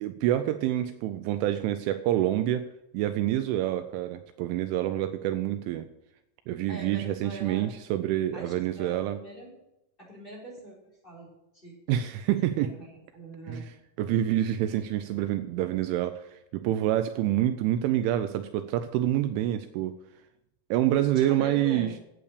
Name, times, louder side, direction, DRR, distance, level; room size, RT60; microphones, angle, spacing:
voice 1, 0.0-2.7 2.9-5.9 6.5-9.2 11.9-12.8 13.5-20.0 20.7-21.9, right 12 dB, 85° right, 9 dB, 2.9 m, -27 dB
voice 2, 6.7-7.6 8.3-9.6 10.0-10.8 11.0-11.3 11.6-11.8 12.6-12.7 13.1-13.6 21.1-21.9, right 1 dB, 10° left, -3 dB, 3.7 m, -42 dB
11.0 x 8.5 x 6.6 m, 0.87 s
omnidirectional pair, 5.8 m